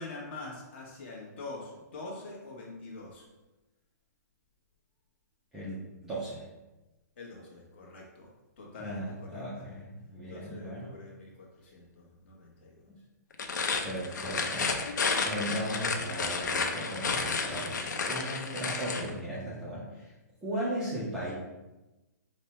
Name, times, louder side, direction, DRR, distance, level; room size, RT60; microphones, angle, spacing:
voice 1, 0.0-3.3 7.2-8.3 8.6-9.7 10.3-12.9 14.1-14.6, left 2 dB, 40° left, -2 dB, 1.0 m, -45 dB
voice 2, 5.5-6.4 8.8-11.0 12.9-13.0 13.8-14.7 15.3-20.1 20.4-21.3, right 1 dB, 5° right, -9 dB, 0.4 m, -37 dB
sound 1, 13.3-19.1, left 4 dB, 75° left, 0.6 m, -31 dB
5.1 x 2.1 x 4.2 m, 1.1 s
hypercardioid pair, 175°, 10 cm